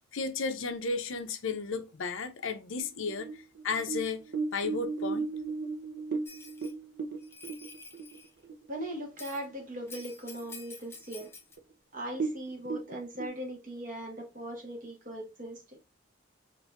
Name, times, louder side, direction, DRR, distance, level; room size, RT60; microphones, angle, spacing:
voice 1, 0.1-3.3 3.6-4.2 4.5-5.3, left 4 dB, 75° left, 0.6 m, -33 dB
sound 1, 2.8-8.7 9.0-9.1 9.5-10.0 10.4-10.5 11.2-11.3 11.6-11.7 12.1-13.3, right 4 dB, 65° right, 0.6 m, -35 dB
Bell, 6.3-6.7 7.2-8.3 9.2-9.4 9.9-11.6, left 4 dB, 10° left, 0.4 m, -48 dB
voice 2, 8.7-11.3 11.9-15.8, right 1 dB, 40° right, 1.2 m, -39 dB
4.2 x 2.6 x 2.3 m
head